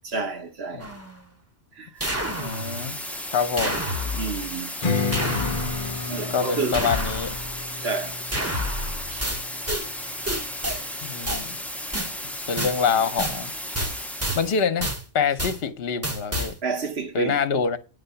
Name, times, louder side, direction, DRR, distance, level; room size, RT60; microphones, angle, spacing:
voice 1, 0.0-0.9 1.8-2.0 3.6-3.8 4.1-4.7 6.1-6.8 7.8-8.2 9.1-9.3 10.4-10.5 16.6-17.4, right 4 dB, 60° right, 1.4 m, -30 dB
sound 1, 0.8-1.2 2.0-3.0 3.6-4.5 5.1-6.1 6.7-7.6 8.3-9.9 10.3-10.8 11.3-11.5 11.9-12.2 12.6-12.8 13.2-13.4 13.7-14.5 14.8-15.0 15.4-15.6 16.0-16.6, equal, 15° right, 0.9 m, -29 dB
voice 2, 2.0-3.0 3.3-3.8 6.3-7.4 11.0-11.6 12.2-13.5 14.3-16.5 17.1-17.8, left 6 dB, 55° left, 1.0 m, -26 dB
sound 2, 2.0-14.7, left 1 dB, ahead, 0.6 m, -35 dB
Strum, 4.8-10.0, left 5 dB, 35° left, 0.8 m, -31 dB
10.0 x 3.9 x 6.9 m
omnidirectional pair, 1.2 m